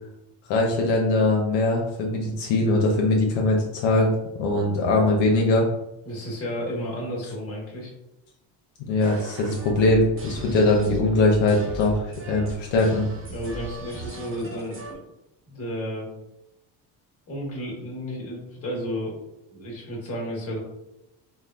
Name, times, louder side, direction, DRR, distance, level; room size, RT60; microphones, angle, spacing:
voice 1, 0.5-5.7 8.9-13.0, left 2 dB, 80° left, 0 dB, 0.7 m, -21 dB
voice 2, 6.0-7.9 10.4-10.6 13.3-15.0 15.5-16.1 17.3-19.2 19.5-20.6, equal, 30° left, -2 dB, 1.2 m, -32 dB
sound 1, 9.0-15.0, right 1 dB, 30° right, 0.7 m, -38 dB
3.1 x 2.1 x 2.3 m, 0.87 s
cardioid pair, 100°, 44 cm